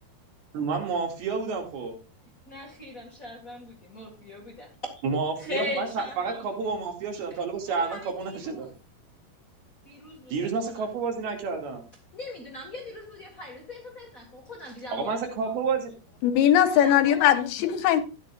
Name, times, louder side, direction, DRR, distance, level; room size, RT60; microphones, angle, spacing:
voice 1, 0.5-1.9 5.0-8.7 10.3-11.8 14.9-15.9, right 4 dB, 75° right, 3 dB, 4.2 m, -30 dB
voice 2, 2.5-4.9 5.4-6.5 7.7-8.8 9.8-10.9 12.1-15.5 16.6-17.3, left 2 dB, 35° left, 0 dB, 1.5 m, -39 dB
voice 3, 16.2-18.0, left 10 dB, 85° left, 10 dB, 3.0 m, -20 dB
13.5 x 11.0 x 2.5 m, 0.31 s
omnidirectional pair, 4.5 m